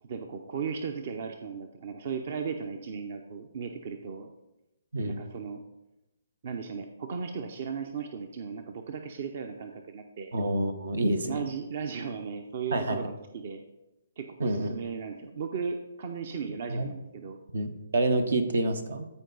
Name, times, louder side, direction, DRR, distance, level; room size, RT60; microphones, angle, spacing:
voice 1, 0.0-4.3 5.1-5.6 6.4-10.3 11.3-13.6 14.2-17.4, right 6 dB, 50° right, 6 dB, 0.7 m, -36 dB
voice 2, 10.3-11.5 12.7-13.0 14.4-14.7 16.7-16.9 17.5-19.1, right 2 dB, 75° right, 9 dB, 1.1 m, -28 dB
13.5 x 4.7 x 4.0 m, 0.94 s
hypercardioid pair, 140°, 0 cm